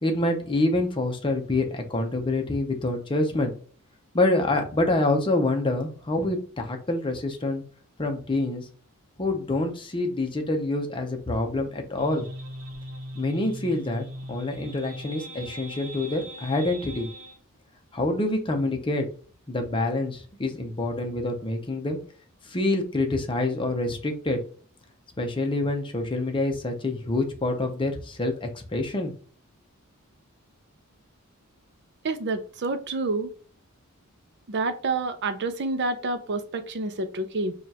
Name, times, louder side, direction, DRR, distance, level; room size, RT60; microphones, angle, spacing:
voice 1, 0.0-3.5 4.1-7.6 8.0-8.7 9.2-12.3 13.1-17.1 17.9-19.1 19.5-22.0 22.5-24.4 25.2-29.1, left 2 dB, 25° left, 4 dB, 0.7 m, -26 dB
sound 1, 12.0-17.4, equal, 90° right, 0.9 m, -40 dB
voice 2, 32.0-33.3 34.5-37.5, right 3 dB, 50° right, 9 dB, 0.5 m, -28 dB
5.0 x 2.4 x 2.8 m, 0.42 s
head